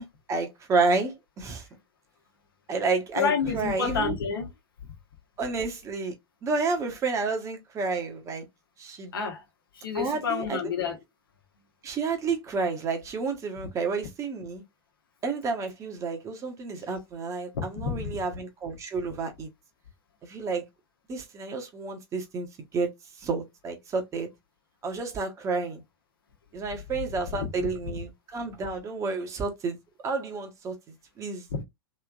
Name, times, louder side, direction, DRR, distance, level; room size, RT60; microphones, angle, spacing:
voice 1, 0.0-1.7 2.7-4.1 5.4-6.1 6.4-8.4 8.8-9.1 9.9-10.6 11.8-14.6 15.2-19.5 20.2-20.6 21.1-22.5 22.7-22.9 23.2-24.3 24.8-25.8 26.5-29.8 30.0-30.7 31.2-31.5, right 4 dB, 25° right, 1.1 m, -30 dB
voice 2, 3.2-4.5 4.8-4.9 9.1-9.4 9.7-11.0 17.5-18.2 27.4-27.5 31.5-31.6, left 6 dB, 65° left, 1.1 m, -29 dB
3.3 x 3.2 x 2.3 m
figure-of-eight pair, 95°, 13 cm